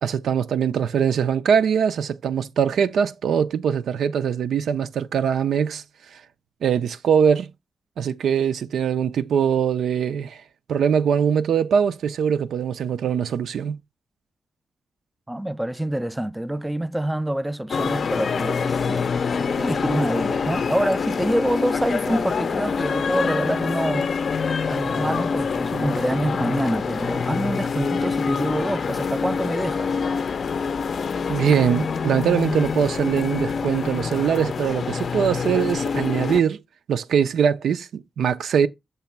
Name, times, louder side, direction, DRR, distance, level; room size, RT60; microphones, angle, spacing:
voice 1, 0.0-5.8 6.1-6.2 6.6-7.5 8.0-10.4 10.7-13.8 31.3-36.6 36.9-38.7, right 7 dB, 90° right, 0.4 m, -22 dB
voice 2, 15.3-24.2 24.7-29.9, right 1 dB, 10° right, 0.4 m, -26 dB
sound 1, 17.7-36.4, left 5 dB, 55° left, 0.5 m, -26 dB
6.9 x 3.0 x 5.8 m
wide cardioid pair, 125°, 0 cm